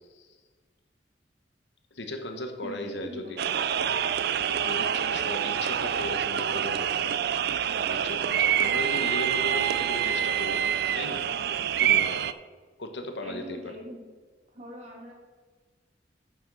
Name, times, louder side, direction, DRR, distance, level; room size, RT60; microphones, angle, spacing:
voice 1, 1.9-3.4 4.0-7.1 7.4-7.5 7.8-10.6 10.9-11.3 11.8-12.2 12.8-13.8, left 1 dB, 70° left, 6 dB, 1.1 m, -37 dB
voice 2, 2.6-3.6 13.2-14.1 14.5-15.1, equal, 40° right, -2 dB, 2.5 m, -42 dB
sound 1, 3.4-12.3, right 9 dB, 60° right, 0.4 m, -26 dB
8.9 x 6.1 x 6.1 m, 1.4 s
head